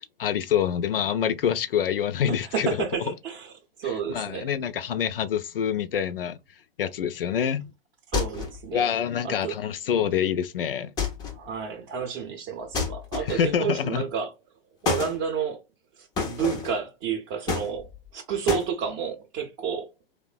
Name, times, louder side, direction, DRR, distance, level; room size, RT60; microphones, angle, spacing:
voice 1, 0.2-2.8 3.8-6.4 6.8-7.7 8.7-10.9 13.3-14.1, left 8 dB, 70° left, 0.5 m, -26 dB
voice 2, 2.3-3.5 3.8-4.5 8.1-8.9 9.2-9.6 11.3-14.3 14.8-15.6 16.0-19.9, right 7 dB, 30° right, 0.6 m, -30 dB
sound 1, 8.1-8.7 11.0-11.5 12.7-13.6 14.8-15.2 16.2-16.8 17.5-18.1 18.5-18.7, left 5 dB, 15° left, 0.4 m, -29 dB
3.1 x 2.1 x 2.3 m
figure-of-eight pair, 110°, 29 cm